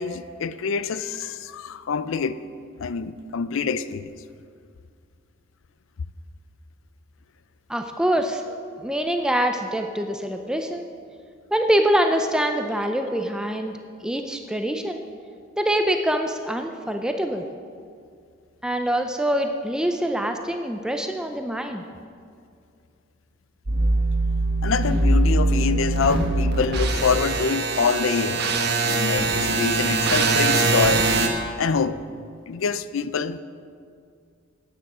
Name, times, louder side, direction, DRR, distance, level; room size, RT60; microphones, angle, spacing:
voice 1, 0.0-2.4 2.8-4.1 24.6-28.5 28.8-31.0 31.6-32.0 32.5-33.4, left 5 dB, 70° left, 0.4 m, -25 dB
voice 2, 7.7-10.9 11.5-13.7 14.0-15.0 15.5-17.4 18.6-21.8, right 1 dB, 5° right, 0.4 m, -24 dB
sound 1, 23.7-31.3, right 2 dB, 50° right, 1.1 m, -22 dB
12.5 x 9.3 x 4.9 m
head